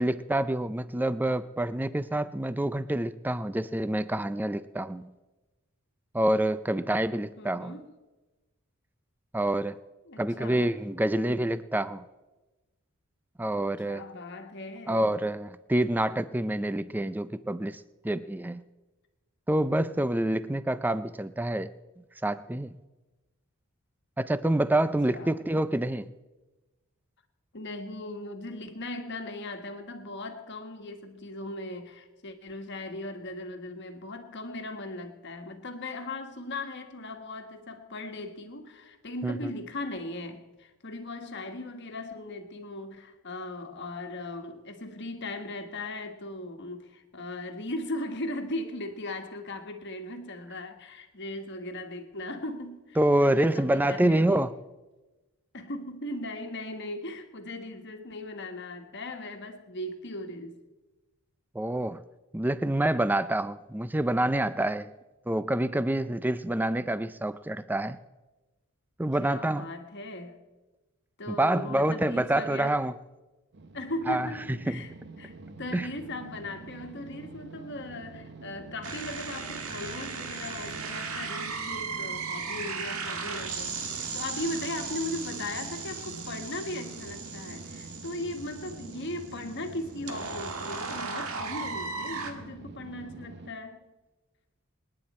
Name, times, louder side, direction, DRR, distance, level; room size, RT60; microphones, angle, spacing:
voice 1, 0.0-5.1 6.1-7.8 9.3-9.8 10.2-12.0 13.4-14.0 14.9-18.6 19.5-21.7 22.2-22.7 24.2-26.1 39.2-39.5 53.0-54.5 61.5-62.0 62.3-64.9 65.3-68.0 69.0-69.7 71.3-72.9 74.1-74.3 75.7-75.9, right 1 dB, 10° right, 15 dB, 0.4 m, -27 dB
voice 2, 7.4-7.9 10.1-10.7 11.0-11.2 13.8-15.1 25.1-25.3 27.5-54.5 55.5-60.6 69.2-70.4 71.2-72.8 73.7-74.9 75.2-75.3 75.6-93.8, left 1 dB, 50° left, 6 dB, 1.5 m, -38 dB
sound 1, 73.5-93.5, right 3 dB, 50° right, 0.8 m, -46 dB
sound 2, 78.8-92.3, right 5 dB, 75° right, 1.7 m, -37 dB
27.0 x 9.8 x 4.3 m, 1.1 s
head